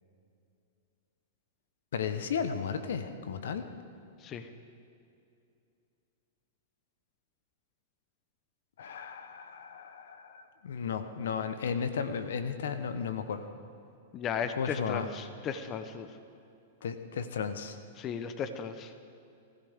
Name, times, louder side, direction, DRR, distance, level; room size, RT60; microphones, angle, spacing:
voice 1, 1.9-3.7 8.8-13.5 14.6-15.1 16.8-17.8, left 6 dB, 75° left, 10 dB, 1.0 m, -34 dB
voice 2, 14.1-16.1 18.0-18.9, left 7 dB, 30° left, 10 dB, 0.9 m, -35 dB
21.0 x 15.5 x 3.7 m, 2.6 s
hypercardioid pair, 120°, 0 cm